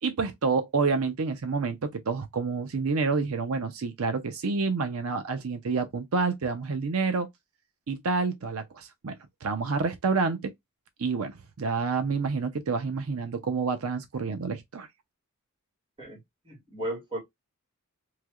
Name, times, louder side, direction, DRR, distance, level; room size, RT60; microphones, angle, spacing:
voice 1, 0.0-7.3 7.9-9.2 9.4-10.5 11.0-14.9, right 4 dB, 80° right, 0.6 m, -28 dB
voice 2, 16.0-17.2, right 1 dB, 25° right, 2.0 m, -36 dB
3.2 x 3.0 x 2.3 m
head